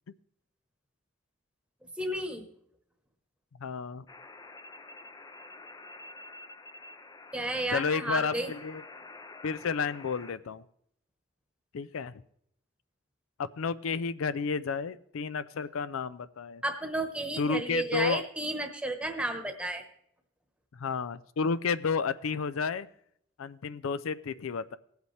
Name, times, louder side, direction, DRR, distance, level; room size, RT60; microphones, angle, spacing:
voice 1, 1.9-2.5 7.3-8.5 16.6-19.8, right 1 dB, 5° right, 5 dB, 1.1 m, -32 dB
voice 2, 3.6-4.1 7.7-8.8 9.4-10.6 11.7-12.2 13.4-16.6 17.4-18.2 20.7-22.9 23.4-24.8, left 5 dB, 85° left, 16 dB, 0.4 m, -31 dB
sound 1, 4.1-10.3, left 3 dB, 20° left, 0.4 m, -48 dB
18.5 x 8.0 x 3.3 m, 0.71 s
head